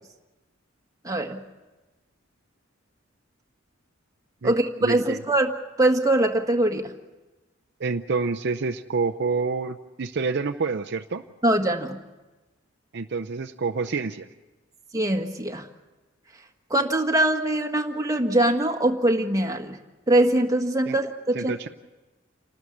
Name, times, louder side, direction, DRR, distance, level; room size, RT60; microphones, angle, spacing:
voice 1, 1.0-1.4 4.4-5.5 5.8-6.9 11.4-12.0 14.9-15.6 16.7-19.8 20.1-21.5, right 1 dB, 15° right, 3 dB, 1.6 m, -22 dB
voice 2, 4.8-5.2 7.8-11.2 12.9-14.3 20.9-21.0 21.3-21.7, right 4 dB, 60° right, 5 dB, 0.6 m, -28 dB
29.0 x 12.5 x 8.5 m, 1.1 s
head